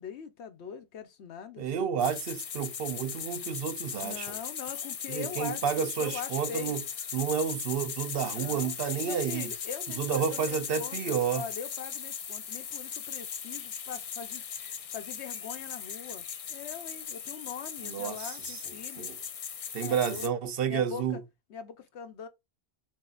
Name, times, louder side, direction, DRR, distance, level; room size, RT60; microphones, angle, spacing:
voice 1, 0.0-1.7 4.0-6.8 8.3-8.7 9.0-14.4 14.9-19.2 19.8-20.3 20.7-21.2 21.5-22.3, left 7 dB, 90° left, 1.0 m, -42 dB
voice 2, 1.6-4.3 5.1-6.8 7.1-9.5 10.0-11.4 17.8-18.6 19.0-19.2 19.7-21.2, right 7 dB, 65° right, 0.9 m, -30 dB
sound 1, 2.0-20.3, left 7 dB, 50° left, 0.4 m, -38 dB
7.2 x 2.8 x 2.4 m
omnidirectional pair, 1.1 m